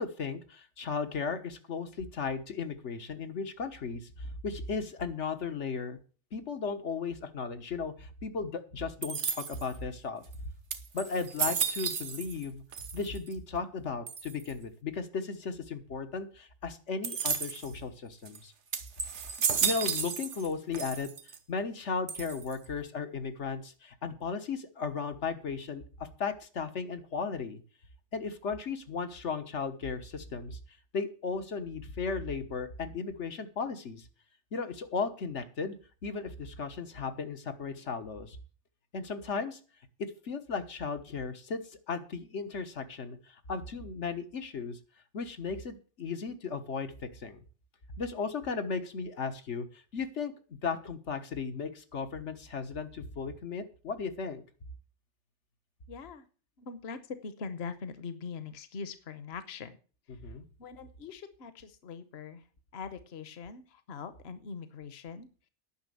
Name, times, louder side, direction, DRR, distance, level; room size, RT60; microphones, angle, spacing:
voice 1, 0.0-6.0 6.3-10.2 10.9-12.6 12.9-18.5 19.5-21.1 21.5-27.6 28.1-30.6 30.9-34.1 34.5-35.8 36.0-38.4 38.9-39.6 40.0-44.8 45.1-47.4 48.0-50.3 50.6-54.4 60.1-60.4, left 5 dB, 90° left, 8 dB, 1.6 m, -36 dB
sound 1, 9.0-9.8 10.3-10.4 10.7-12.5 12.7-13.3 14.1-14.5 17.0-17.7 18.3-18.4 18.7-20.5 20.7-21.4 22.1-22.7, right 6 dB, 85° right, 1.4 m, -33 dB
voice 2, 55.9-56.2 56.6-57.0 57.2-59.7 60.6-62.4 62.7-65.3, left 5 dB, 65° left, 12 dB, 1.2 m, -42 dB
10.5 x 6.3 x 8.4 m, 0.38 s
omnidirectional pair, 1.2 m